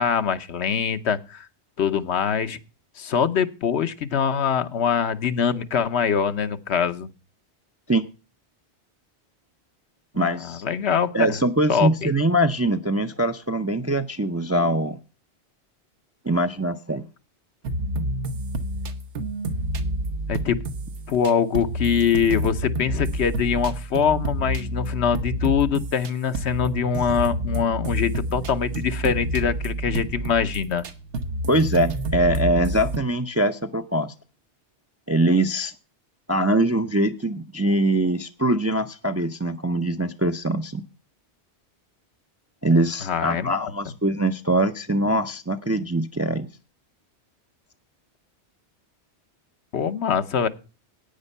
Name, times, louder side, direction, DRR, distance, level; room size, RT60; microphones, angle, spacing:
voice 1, 0.0-1.5 1.8-2.6 3.0-7.1 10.2-11.3 11.7-12.1 20.3-20.6 21.1-30.8 43.0-43.7 49.7-50.5, left 7 dB, 75° left, 11 dB, 1.1 m, -23 dB
voice 2, 10.1-10.6 11.1-15.0 16.2-17.1 31.5-34.1 35.1-35.7 36.3-40.8 42.6-46.5, right 1 dB, 20° right, 8 dB, 0.4 m, -23 dB
sound 1, 17.6-26.1 26.3-33.0, right 1 dB, 80° right, 1.3 m, -29 dB
10.5 x 9.1 x 5.4 m, 0.33 s
omnidirectional pair, 1.2 m